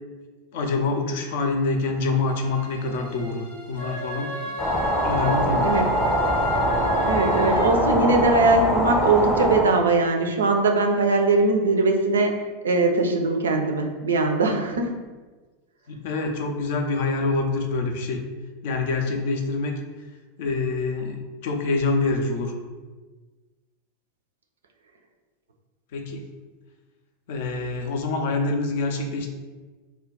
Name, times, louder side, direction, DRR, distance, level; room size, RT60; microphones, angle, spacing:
voice 1, 0.5-4.6 5.0-5.8 15.9-18.2 18.6-19.8 20.4-22.5 25.9-26.2 27.3-29.3, left 3 dB, 60° left, 3 dB, 0.4 m, -26 dB
sound 1, 1.9-7.7, left 1 dB, 85° left, 0.9 m, -34 dB
sound 2, 4.6-9.6, equal, ahead, 0.6 m, -23 dB
voice 2, 7.0-12.3 12.6-14.9, right 3 dB, 75° right, 4 dB, 0.3 m, -21 dB
2.2 x 2.2 x 3.7 m, 1.3 s
figure-of-eight pair, 85°, 0 cm